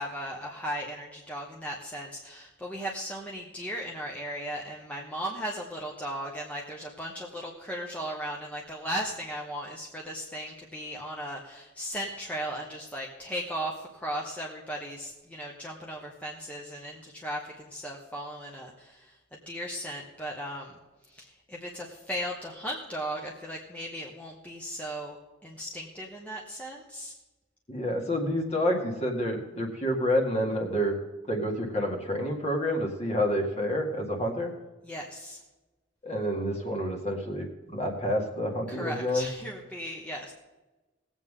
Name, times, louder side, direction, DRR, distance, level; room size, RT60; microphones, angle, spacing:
voice 1, 0.0-20.8 21.1-25.2 25.4-27.1 34.8-35.4 38.7-40.3, equal, 5° left, -2 dB, 1.1 m, -37 dB
voice 2, 27.7-30.9 31.3-34.5 36.0-39.3, equal, 30° left, 2 dB, 1.8 m, -28 dB
19.5 x 8.2 x 3.7 m, 1.2 s
head